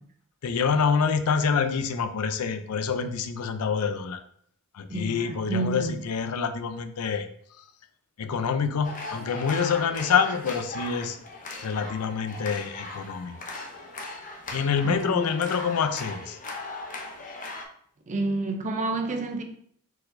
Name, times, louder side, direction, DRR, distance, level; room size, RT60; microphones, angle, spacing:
voice 1, 0.4-4.2 4.7-7.3 8.2-11.2 11.6-13.4 14.5-16.4, left 6 dB, 80° left, 0.4 m, -26 dB
voice 2, 4.9-5.9 14.8-15.3 18.1-19.4, right 2 dB, 35° right, 0.5 m, -29 dB
sound 1, 8.8-17.6, left 2 dB, 35° left, 0.7 m, -38 dB
4.4 x 4.1 x 2.6 m
head